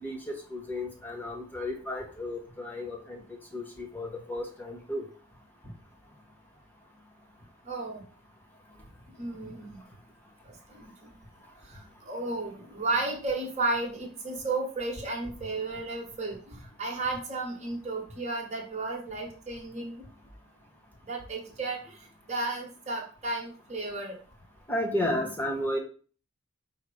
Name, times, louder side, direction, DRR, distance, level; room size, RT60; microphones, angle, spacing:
voice 1, 0.0-5.0 24.7-25.8, left 1 dB, 10° left, 0 dB, 0.7 m, -33 dB
voice 2, 7.6-8.0 9.2-9.8 10.4-11.1 12.0-20.0 21.0-22.0 22.3-24.2, right 2 dB, 35° right, 0 dB, 1.1 m, -33 dB
5.5 x 2.0 x 4.8 m, 0.41 s
head